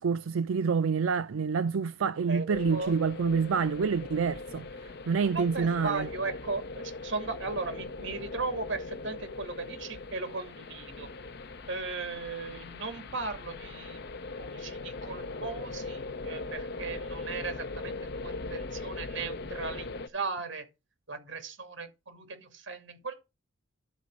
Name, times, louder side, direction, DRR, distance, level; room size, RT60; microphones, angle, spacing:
voice 1, 0.0-6.1, right 5 dB, 90° right, 0.4 m, -28 dB
voice 2, 2.2-2.9 5.2-11.1 11.7-14.0 14.4-20.6 21.1-23.2, right 3 dB, 65° right, 2.4 m, -37 dB
sound 1, 2.5-20.1, left 3 dB, 55° left, 0.8 m, -40 dB
12.0 x 4.2 x 6.1 m
head